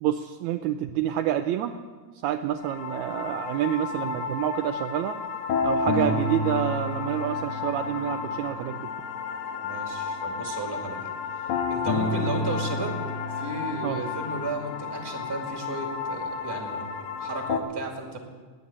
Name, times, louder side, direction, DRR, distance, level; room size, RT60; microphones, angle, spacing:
voice 1, 0.0-1.8 2.2-5.2 5.6-8.9 11.9-12.0 13.8-14.0, right 11 dB, 80° right, 8 dB, 1.8 m, -28 dB
sound 1, 2.6-17.6, left 4 dB, 75° left, 2.4 m, -31 dB
voice 2, 9.6-11.1 11.7-13.0 13.3-16.9 17.2-18.2, right 2 dB, 10° right, 2 dB, 1.7 m, -34 dB
20.0 x 8.6 x 8.5 m, 1.5 s
omnidirectional pair, 3.6 m